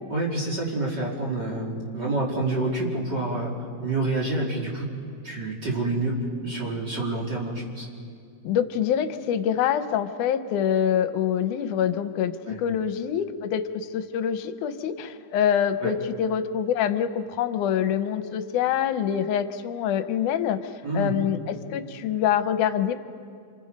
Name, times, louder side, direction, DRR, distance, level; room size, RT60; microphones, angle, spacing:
voice 1, 0.1-3.5 3.8-4.9 5.2-7.9 12.5-12.6 15.8-16.0 20.8-21.1, right 2 dB, 35° right, -2 dB, 3.1 m, -28 dB
voice 2, 8.4-22.9, left 9 dB, 80° left, 10 dB, 2.3 m, -25 dB
28.5 x 27.0 x 5.3 m, 2.3 s
omnidirectional pair, 3.5 m